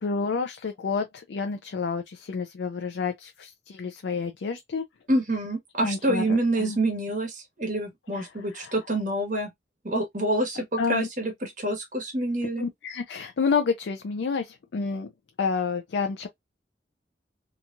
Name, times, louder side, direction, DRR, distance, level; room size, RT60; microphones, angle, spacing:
voice 1, 0.0-4.8 5.8-6.8 8.1-8.3 8.5-8.7 10.8-11.1 12.6-15.1 15.4-16.3, left 5 dB, 80° left, 0.4 m, -29 dB
voice 2, 5.1-9.5 9.8-12.6, right 1 dB, 45° right, 1.2 m, -27 dB
3.0 x 2.3 x 2.5 m
head